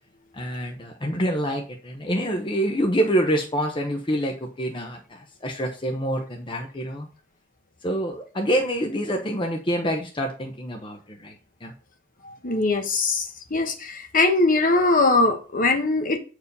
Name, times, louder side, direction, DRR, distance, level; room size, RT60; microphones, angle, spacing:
voice 1, 0.3-7.1 7.8-11.3 11.6-11.7, equal, 25° left, 0.9 m, -26 dB
voice 2, 12.2-16.2, left 3 dB, 40° left, 1.2 m, -21 dB
8.2 x 4.8 x 5.4 m
head